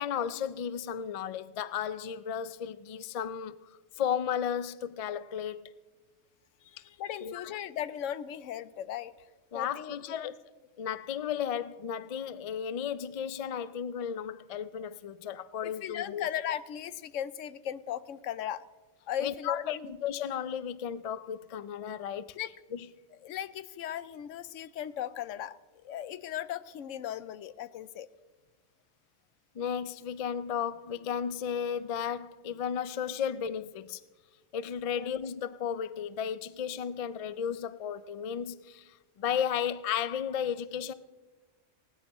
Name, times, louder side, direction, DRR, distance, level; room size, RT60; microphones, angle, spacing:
voice 1, 0.0-3.6 4.0-5.7 7.2-7.6 9.5-10.3 10.8-16.3 19.2-22.4 22.7-22.8 29.5-34.0 34.5-40.9, left 8 dB, 65° left, 0.3 m, -34 dB
voice 2, 6.6-9.3 9.5-10.3 15.6-18.6 19.1-19.9 22.3-22.5 23.2-28.1 34.9-35.1, left 10 dB, 85° left, 1.0 m, -37 dB
19.5 x 17.5 x 3.0 m
omnidirectional pair, 1.3 m